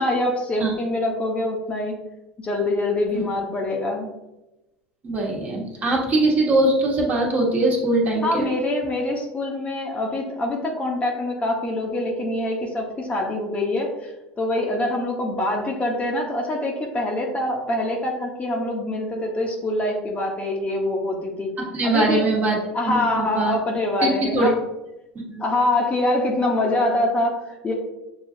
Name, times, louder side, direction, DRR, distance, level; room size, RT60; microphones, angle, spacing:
voice 1, 0.0-2.0 2.4-4.1 8.2-21.5 21.8-22.2 22.7-24.5 25.4-27.7, left 1 dB, 25° left, 0 dB, 0.9 m, -24 dB
voice 2, 5.0-8.5 21.7-22.6 22.8-23.6 24.0-24.5 25.3-25.4, right 2 dB, 35° right, -2 dB, 1.3 m, -21 dB
6.7 x 2.3 x 2.7 m, 0.99 s
hypercardioid pair, 80°, 5 cm